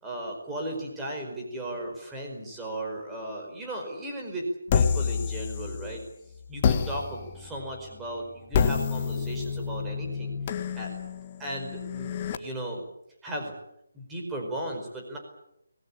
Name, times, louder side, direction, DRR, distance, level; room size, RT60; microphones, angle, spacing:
voice 1, 0.0-6.0 6.5-10.3 10.7-10.9 11.4-12.8 13.2-13.5 13.9-15.2, right 1 dB, 5° right, 0 dB, 5.0 m, -36 dB
sound 1, 4.7-6.1 6.6-12.4, left 6 dB, 20° left, 1.7 m, -29 dB
24.5 x 21.5 x 8.7 m, 0.79 s
hypercardioid pair, 175°, 0 cm